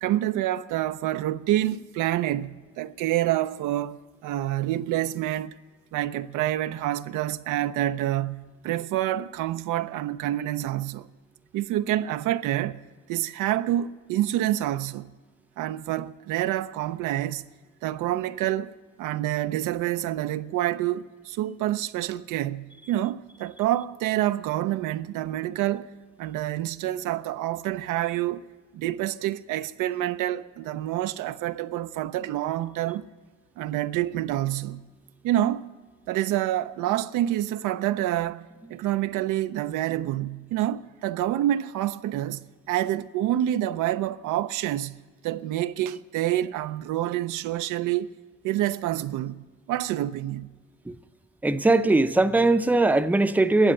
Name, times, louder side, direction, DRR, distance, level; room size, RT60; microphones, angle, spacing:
voice 1, 0.0-5.6 5.9-11.1 11.5-15.1 15.6-17.4 17.8-18.7 19.0-25.9 26.2-28.4 28.7-33.0 33.6-34.9 35.2-35.7 36.1-48.1 48.4-50.5, right 13 dB, 90° right, 0.5 m, -27 dB
voice 2, 51.4-53.7, right 2 dB, 5° right, 0.5 m, -20 dB
13.0 x 8.2 x 9.7 m
cardioid pair, 90°, 30 cm